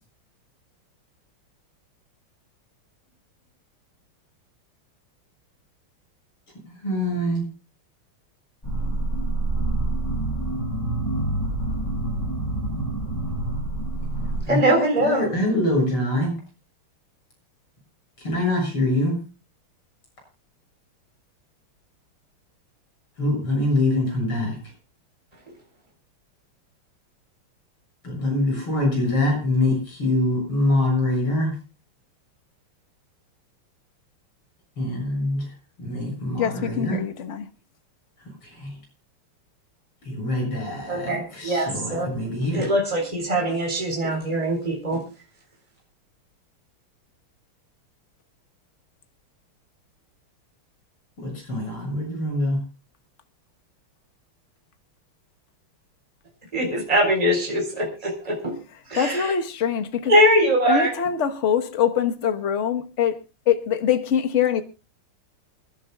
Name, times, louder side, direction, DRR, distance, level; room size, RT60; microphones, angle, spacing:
voice 1, 6.7-7.5 14.4-16.4 18.2-19.2 23.2-24.6 28.0-31.5 34.8-35.4 35.8-37.0 38.4-38.7 40.0-42.7 51.2-52.6, left 1 dB, 80° left, 8.0 m, -24 dB
sound 1, 8.6-14.4, right 2 dB, 10° left, 6.3 m, -26 dB
voice 2, 14.5-15.3 40.9-42.1 42.5-45.0 56.5-58.5 58.9-59.3 60.1-60.9, equal, 15° right, 3.9 m, -22 dB
voice 3, 36.4-37.5 58.9-60.1 60.7-63.2 63.5-64.6, left 8 dB, 40° left, 1.2 m, -23 dB
28.0 x 11.5 x 2.3 m
omnidirectional pair, 2.4 m